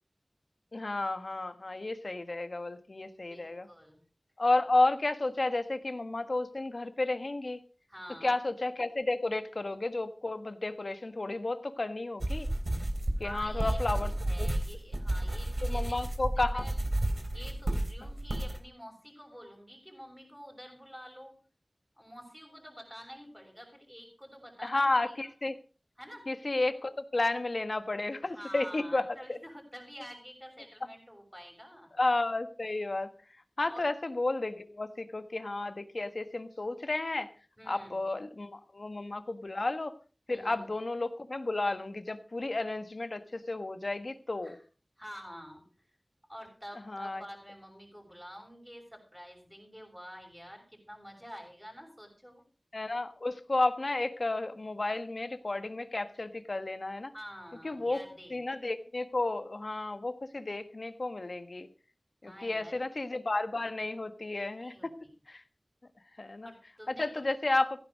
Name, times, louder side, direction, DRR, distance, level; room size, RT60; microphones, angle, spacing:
voice 1, 0.7-3.7 4.4-7.6 8.2-12.5 13.2-14.1 14.4-14.5 15.6-16.7 24.6-25.6 26.3-29.4 32.0-33.1 33.6-37.3 37.7-39.9 40.3-44.6 46.9-47.2 52.7-57.1 57.6-58.0 58.3-61.7 62.2-64.9 65.3-65.4 66.2-66.5 66.9-67.8, left 2 dB, 70° left, 10 dB, 1.4 m, -32 dB
voice 2, 3.3-4.0 7.9-8.3 13.2-16.0 16.3-16.8 17.3-21.3 22.0-25.3 26.0-26.3 28.2-31.9 33.7-33.9 37.6-38.0 40.3-40.7 44.4-44.6 45.0-45.7 46.3-52.4 57.1-58.4 62.2-62.8 64.6-64.9 66.4-67.3, equal, ahead, 3 dB, 6.8 m, -48 dB
sound 1, 12.2-18.6, right 1 dB, 55° right, 3.3 m, -32 dB
16.0 x 10.5 x 5.1 m, 0.36 s
wide cardioid pair, 45°, 0 cm